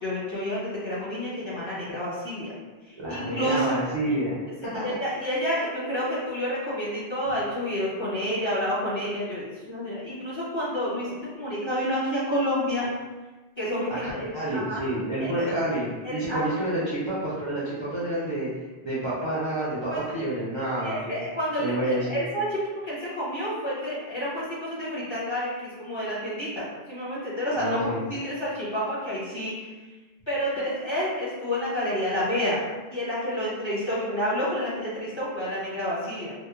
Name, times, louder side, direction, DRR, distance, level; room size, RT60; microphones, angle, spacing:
voice 1, 0.0-2.5 2.9-3.8 4.8-12.9 13.6-14.3 14.5-14.8 15.2-15.6 16.0-16.5 19.9-20.3 20.8-22.6 22.8-29.7 30.3-32.6 32.9-36.3, equal, 30° left, -10 dB, 0.7 m, -29 dB
voice 2, 3.0-4.4 4.6-4.8 14.0-18.5 18.8-21.2 21.6-22.1 27.6-28.0, right 1 dB, 35° right, -10 dB, 0.5 m, -29 dB
2.9 x 2.1 x 2.3 m, 1.2 s
omnidirectional pair, 1.0 m